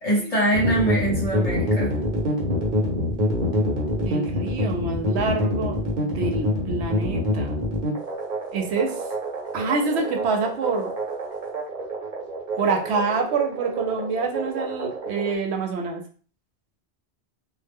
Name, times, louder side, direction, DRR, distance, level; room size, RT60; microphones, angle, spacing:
voice 1, 0.0-2.0, right 1 dB, 35° left, -4 dB, 0.8 m, -23 dB
sound 1, 0.5-15.3, equal, 50° right, 0.8 m, -26 dB
voice 2, 4.0-5.8 6.0-7.5 8.5-8.9 9.5-10.9 12.6-16.0, right 4 dB, 85° right, 3 dB, 0.9 m, -26 dB
2.1 x 2.0 x 3.4 m, 0.41 s
omnidirectional pair, 1.1 m